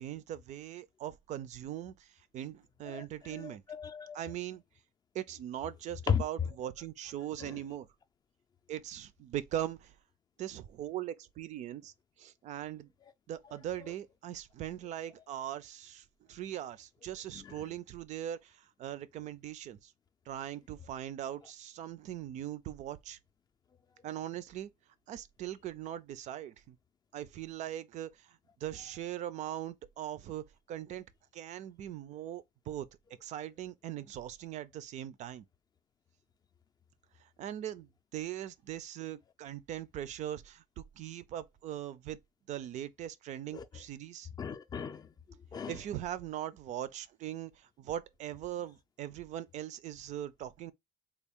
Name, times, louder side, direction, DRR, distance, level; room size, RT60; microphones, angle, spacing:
voice 1, 0.0-2.1 2.3-3.6 4.1-4.6 5.1-7.9 8.7-9.9 10.4-11.9 12.2-12.9 13.3-19.9 20.3-23.2 24.0-24.7 25.1-26.8 27.1-31.0 31.3-32.9 33.2-35.5 37.4-42.2 42.5-44.3 45.7-50.7, right 11 dB, 55° right, 0.4 m, -40 dB
voice 2, 2.9-4.2 6.1-6.2 7.4-7.6 13.8-13.9 17.3-17.5 43.5-43.6 44.4-45.1 45.5-45.7, left 7 dB, 30° left, 0.4 m, -35 dB
3.4 x 2.3 x 3.5 m
cardioid pair, 135°, 14 cm